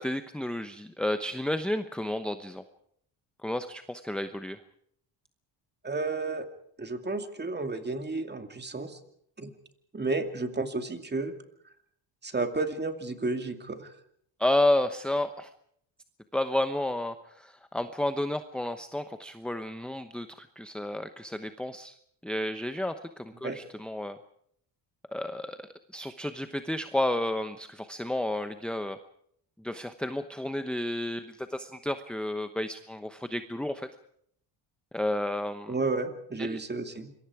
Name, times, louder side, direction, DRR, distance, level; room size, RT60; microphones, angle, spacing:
voice 1, 0.0-2.6 3.4-4.6 14.4-15.5 16.3-22.0 22.2-24.2 25.1-25.7 25.9-29.0 29.6-33.9 34.9-35.7 36.4-36.6, left 1 dB, ahead, 9 dB, 0.9 m, -31 dB
voice 2, 5.8-6.5 6.8-9.0 9.4-9.5 9.9-11.3 12.2-13.9 23.4-23.6 35.7-37.1, right 3 dB, 25° right, 7 dB, 2.5 m, -32 dB
26.5 x 22.5 x 4.9 m, 0.67 s
cardioid pair, 105°, 44 cm